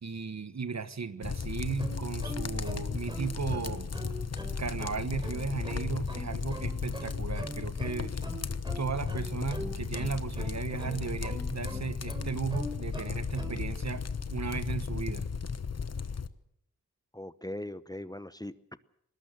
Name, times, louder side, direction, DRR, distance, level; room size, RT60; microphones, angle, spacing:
voice 1, 0.0-3.9 4.6-8.1 8.8-14.0 14.3-15.3, right 5 dB, 55° right, 12 dB, 1.4 m, -35 dB
sound 1, 1.2-16.3, left 5 dB, 50° left, 1.2 m, -35 dB
sound 2, 1.8-13.6, right 1 dB, 15° right, 4.2 m, -42 dB
voice 2, 17.1-18.8, left 1 dB, 10° left, 14 dB, 0.9 m, -40 dB
21.0 x 18.5 x 7.8 m, 0.75 s
cardioid pair, 40°, 33 cm